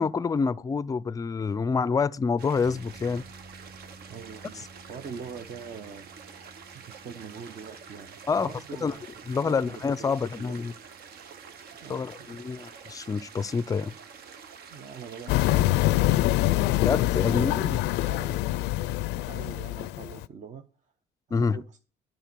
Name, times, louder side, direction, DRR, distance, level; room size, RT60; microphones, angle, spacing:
voice 1, 0.0-3.2 8.3-8.5 8.8-8.9 9.3-10.7 11.9-13.9 16.8-17.8 21.3-21.6, left 5 dB, 20° left, 0.4 m, -27 dB
sound 1, 2.4-15.6, right 6 dB, 70° right, 1.1 m, -47 dB
sound 2, 2.6-16.9, right 2 dB, 25° right, 1.5 m, -55 dB
voice 2, 4.1-6.3 6.7-9.1 9.3-10.6 11.8-12.4 14.7-16.8 17.2-18.5 19.1-20.6 21.3-21.8, right 6 dB, 45° right, 0.9 m, -44 dB
sound 3, 15.3-20.3, left 17 dB, 85° left, 0.4 m, -25 dB
10.5 x 5.2 x 6.8 m
cardioid pair, 110°, 17 cm